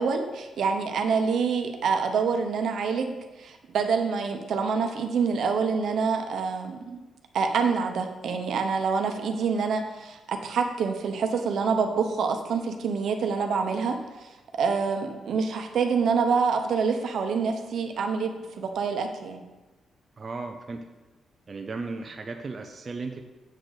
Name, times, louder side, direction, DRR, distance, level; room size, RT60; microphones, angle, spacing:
voice 1, 0.0-7.0 7.3-19.4, right 5 dB, 70° right, 5 dB, 0.9 m, -26 dB
voice 2, 20.2-20.8 21.5-23.2, right 3 dB, 35° right, 3 dB, 0.5 m, -35 dB
7.5 x 4.0 x 6.5 m, 1.1 s
cardioid pair, 110°, 0 cm